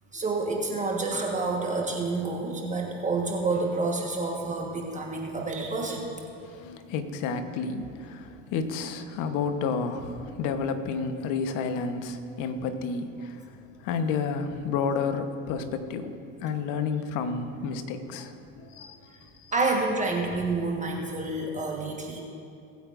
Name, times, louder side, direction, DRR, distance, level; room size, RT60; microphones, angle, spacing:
voice 1, 0.1-6.2 19.5-22.2, right 3 dB, 20° right, -1 dB, 1.4 m, -28 dB
voice 2, 6.4-13.4 13.8-19.5, left 5 dB, 55° left, 8 dB, 1.1 m, -31 dB
20.0 x 8.4 x 2.6 m, 2.6 s
hypercardioid pair, 85°, 37 cm